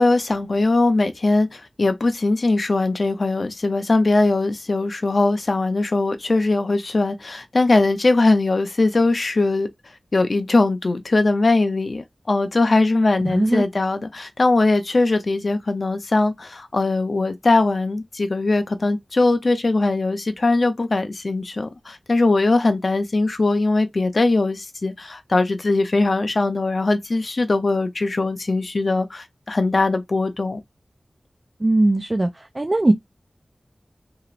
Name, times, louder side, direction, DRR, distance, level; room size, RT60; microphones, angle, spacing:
voice 1, 0.0-9.7 10.1-30.6, left 2 dB, 60° left, 0.5 m, -20 dB
voice 2, 13.2-13.7 31.6-32.9, right 2 dB, 35° right, 0.3 m, -19 dB
2.9 x 2.9 x 2.4 m
wide cardioid pair, 70°, 0 cm